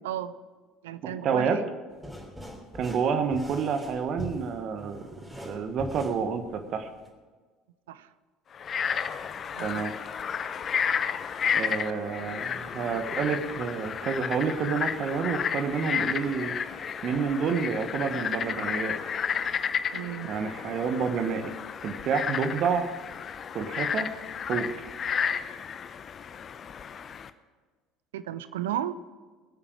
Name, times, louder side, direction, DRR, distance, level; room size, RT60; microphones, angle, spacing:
voice 1, 0.0-0.3 0.8-1.7 7.9-8.1 9.5-9.8 19.9-20.3 28.1-29.0, right 11 dB, 70° right, 15 dB, 0.6 m, -34 dB
voice 2, 1.0-1.6 2.8-5.0 5.4-6.9 9.6-9.9 11.5-16.5 17.0-19.0 20.2-21.5 21.8-22.9 23.5-24.1 24.5-24.7, right 6 dB, 45° right, 7 dB, 1.3 m, -29 dB
sound 1, 1.9-7.1, left 1 dB, 5° right, 3.1 m, -42 dB
Frog, 8.5-27.3, left 7 dB, 35° left, 0.7 m, -32 dB
22.0 x 8.8 x 4.9 m, 1.4 s
figure-of-eight pair, 65°, 0 cm